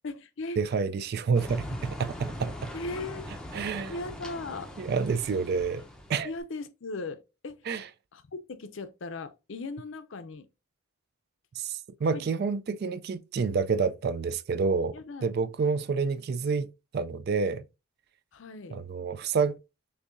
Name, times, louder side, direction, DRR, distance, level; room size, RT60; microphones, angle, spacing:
voice 1, 0.0-0.6 2.7-3.2 3.9-4.7 6.2-7.6 8.1-10.5 12.1-12.2 14.9-15.3 18.3-18.8, left 3 dB, 60° left, 0.5 m, -38 dB
voice 2, 0.6-2.7 3.5-3.9 4.8-5.8 6.1-6.3 7.7-7.9 11.6-14.9 15.2-17.7 18.7-19.6, right 5 dB, 45° right, 0.3 m, -28 dB
sound 1, 1.3-6.3, left 1 dB, 5° left, 0.5 m, -41 dB
6.5 x 2.7 x 2.5 m
head